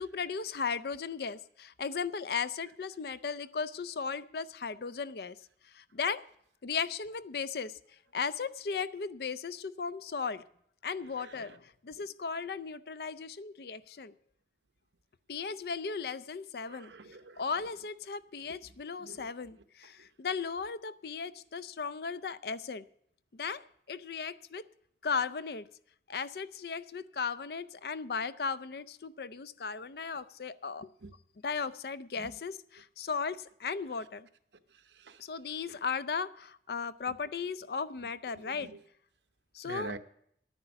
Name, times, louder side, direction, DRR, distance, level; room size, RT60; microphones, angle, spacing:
voice 1, 0.0-5.4 5.7-6.2 6.6-7.7 8.1-10.4 10.8-14.1 15.3-16.9 17.4-22.8 23.3-24.6 25.0-25.7 26.1-30.9 31.4-34.3 35.2-38.7 39.5-39.9, left 5 dB, 60° left, 15 dB, 0.5 m, -36 dB
voice 2, 11.2-11.6 12.0-12.1 16.7-17.4 19.0-19.3 20.0-20.1 31.0-31.1 32.2-32.4 34.7-35.2 37.1-37.2 38.3-38.8 39.6-40.0, right 3 dB, 80° right, 10 dB, 0.8 m, -46 dB
11.0 x 9.7 x 7.0 m, 0.70 s
head